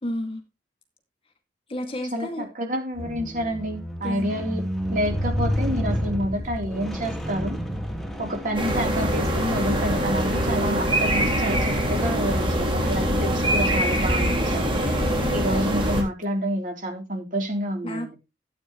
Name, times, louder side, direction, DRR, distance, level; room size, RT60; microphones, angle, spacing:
voice 1, 0.0-0.4 1.7-2.5 4.0-4.3 15.0-15.3 17.8-18.1, left 1 dB, 30° left, 2.3 m, -31 dB
voice 2, 2.1-4.6 4.9-7.6 8.2-14.8 15.3-18.2, equal, 50° right, 3.8 m, -28 dB
Squeak, 3.0-9.3 10.1-10.2, equal, ahead, 2.1 m, -30 dB
sound 1, 8.5-16.0, equal, 30° right, 3.3 m, -23 dB
14.0 x 8.6 x 3.2 m
head